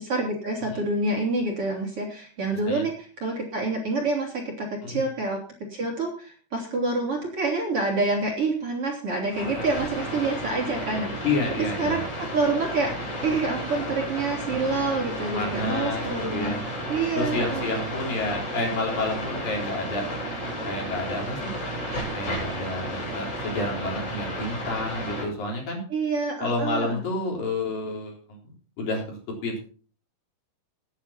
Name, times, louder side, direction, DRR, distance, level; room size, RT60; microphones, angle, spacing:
voice 1, 0.0-5.4 5.7-11.3 11.8-17.7 25.9-27.0, right 3 dB, 35° right, 0 dB, 3.8 m, -27 dB
sound 1, 9.3-25.3, equal, 35° left, 8.5 m, -32 dB
voice 2, 11.2-12.0 15.3-16.0 16.3-16.6 17.1-20.1 20.7-21.5 22.1-25.8 26.4-28.2 28.8-29.6, left 2 dB, 55° left, -1 dB, 5.4 m, -29 dB
18.0 x 9.9 x 4.3 m, 0.41 s
omnidirectional pair, 4.8 m